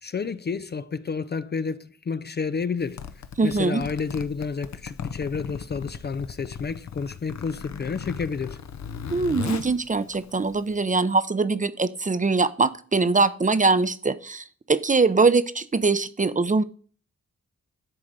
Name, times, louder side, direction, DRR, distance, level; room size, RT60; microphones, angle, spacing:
voice 1, 0.0-3.1 3.4-8.6, left 5 dB, 35° left, 0.5 m, -30 dB
Zipper (clothing), 2.8-10.8, left 7 dB, 65° left, 0.8 m, -37 dB
voice 2, 3.4-3.8 9.1-16.6, right 3 dB, 25° right, 0.7 m, -22 dB
11.0 x 3.8 x 6.6 m
cardioid pair, 65°, 29 cm